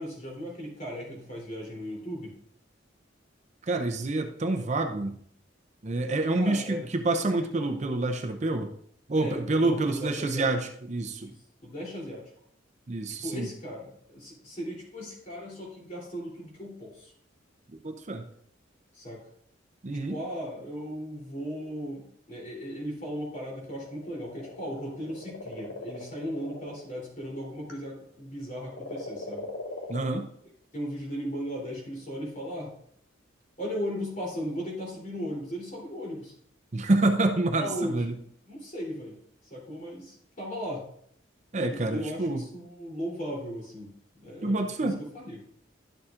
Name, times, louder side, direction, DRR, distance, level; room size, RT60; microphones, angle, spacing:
voice 1, 0.0-2.4 6.3-6.8 9.2-10.5 11.2-11.3 11.6-12.3 13.2-17.1 18.9-19.2 20.1-29.5 30.7-32.7 33.6-36.3 37.6-38.0 38.5-39.2 39.5-40.8 41.5-45.4, equal, 40° left, -3 dB, 3.3 m, -37 dB
voice 2, 3.6-5.2 5.8-8.7 9.1-11.3 12.9-13.5 17.7-18.3 19.8-20.2 29.9-30.3 36.7-38.1 41.5-42.4 44.4-45.0, right 2 dB, 40° right, 5 dB, 0.6 m, -27 dB
sound 1, 23.7-28.0 28.7-30.0, left 2 dB, 80° left, 1.8 m, -40 dB
11.0 x 7.0 x 2.5 m, 0.65 s
head